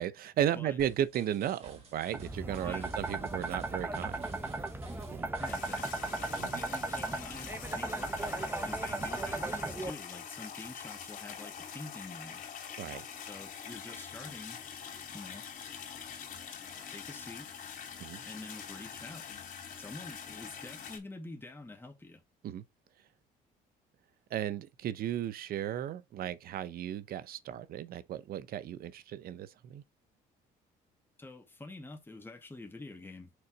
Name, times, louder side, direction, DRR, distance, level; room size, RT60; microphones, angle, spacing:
voice 1, 0.0-4.3 5.1-5.3 6.4-6.6 12.8-13.1 18.0-18.2 22.4-22.6 24.3-29.8, right 10 dB, 60° right, 0.8 m, -35 dB
sound 1, 0.8-6.4, right 3 dB, 35° right, 3.2 m, -54 dB
sound 2, 2.1-9.9, right 2 dB, 15° right, 0.7 m, -36 dB
sound 3, 5.4-21.0, left 7 dB, 55° left, 3.3 m, -45 dB
voice 2, 5.4-6.1 6.5-12.4 13.3-14.6 15.1-15.5 16.9-17.5 18.2-19.3 19.8-22.2 31.2-33.3, left 2 dB, 15° left, 1.9 m, -47 dB
6.4 x 3.9 x 4.6 m
cardioid pair, 110°, 17 cm